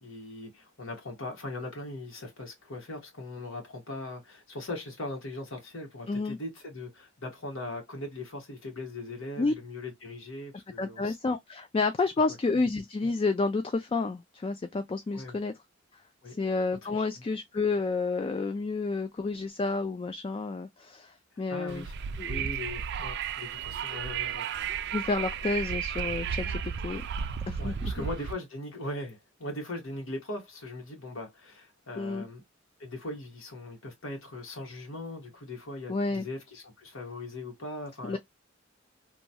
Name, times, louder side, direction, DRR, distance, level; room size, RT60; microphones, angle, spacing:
voice 1, 0.0-11.2 15.1-15.4 16.2-16.4 16.8-17.1 21.5-21.9 22.3-24.5 27.6-32.4 32.8-38.2, left 1 dB, 80° left, 1.3 m, -40 dB
voice 2, 6.1-6.4 9.4-9.5 10.8-15.5 16.3-21.9 22.2-22.5 24.9-27.0 27.5-28.0 32.0-32.3 35.9-36.3 38.0-38.2, left 3 dB, 25° left, 0.3 m, -30 dB
Wind, 21.7-28.3, right 7 dB, 55° right, 0.4 m, -33 dB
3.0 x 2.3 x 2.6 m
head